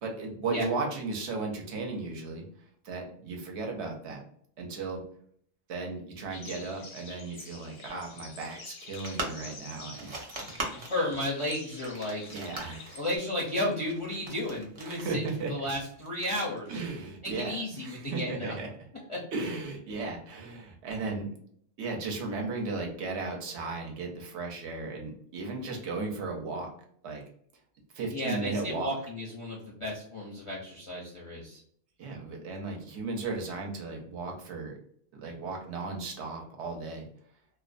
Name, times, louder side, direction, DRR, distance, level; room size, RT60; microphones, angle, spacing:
voice 1, 0.0-2.4 2.8-4.2 4.6-5.0 5.7-10.8 12.3-13.0 14.8-15.5 16.7-18.7 19.3-21.3 21.8-26.7 27.0-27.2 27.9-29.0 32.0-34.7 35.1-37.1, right 3 dB, 70° right, 2 dB, 0.9 m, -35 dB
sound 1, 6.3-13.2, left 4 dB, 80° left, 0.9 m, -47 dB
sound 2, 8.9-17.2, right 2 dB, 50° right, 0.4 m, -42 dB
voice 2, 10.7-12.2 13.0-15.2 15.5-16.8 17.2-18.5 19.1-19.2 28.1-31.6, left 1 dB, 45° left, -5 dB, 0.4 m, -33 dB
2.4 x 2.1 x 2.4 m, 0.63 s
omnidirectional pair, 1.3 m